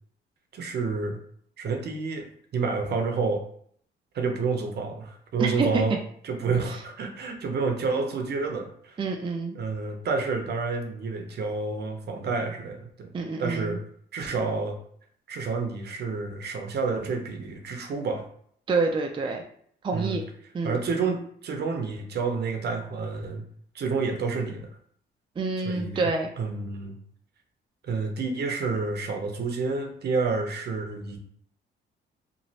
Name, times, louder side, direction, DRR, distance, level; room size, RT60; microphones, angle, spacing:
voice 1, 0.5-1.2 1.6-3.4 4.1-6.0 6.2-9.0 9.5-13.1 13.4-13.8 14.1-14.8 15.3-18.3 19.9-20.2 20.6-23.4 23.7-24.7 25.6-26.1 26.4-27.0 27.8-31.2, right 4 dB, 55° right, 4 dB, 0.7 m, -29 dB
voice 2, 5.4-5.8 9.0-9.6 13.1-13.8 18.7-19.4 19.8-20.2 20.5-20.8 25.4-26.3, right 3 dB, 25° right, 2 dB, 0.4 m, -27 dB
3.0 x 2.5 x 2.8 m, 0.64 s
cardioid pair, 90°, 20 cm